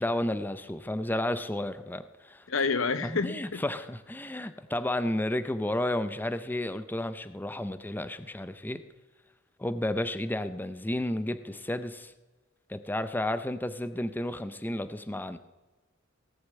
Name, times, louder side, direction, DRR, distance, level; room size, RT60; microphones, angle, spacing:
voice 1, 0.0-2.4 3.0-8.8 9.6-12.1 12.7-15.4, left 1 dB, 10° left, 11 dB, 0.5 m, -32 dB
voice 2, 2.5-3.6, left 4 dB, 85° left, 13 dB, 0.9 m, -28 dB
18.0 x 6.5 x 8.4 m, 1.2 s
head